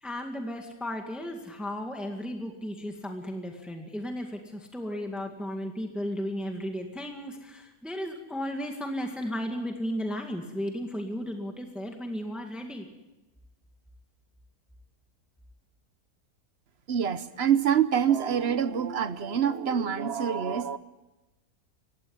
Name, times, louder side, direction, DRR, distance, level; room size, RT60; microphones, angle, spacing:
voice 1, 0.0-12.9, equal, ahead, 3 dB, 2.0 m, -34 dB
voice 2, 16.9-20.8, right 8 dB, 50° right, 13 dB, 1.0 m, -26 dB
19.0 x 16.0 x 9.6 m, 1.0 s
omnidirectional pair, 1.6 m